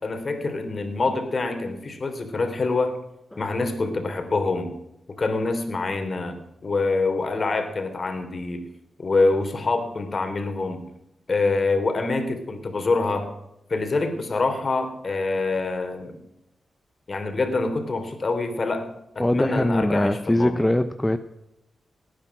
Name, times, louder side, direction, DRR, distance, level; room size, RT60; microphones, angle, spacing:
voice 1, 0.0-3.0 3.4-4.7 5.2-6.4 6.6-8.6 9.0-10.8 11.3-13.3 13.7-16.2 17.1-18.9 19.2-20.6, left 3 dB, 45° left, 7 dB, 3.5 m, -25 dB
voice 2, 19.2-21.2, left 1 dB, 10° left, 10 dB, 0.8 m, -22 dB
18.5 x 10.0 x 6.1 m, 0.86 s
cardioid pair, 70°, 0 cm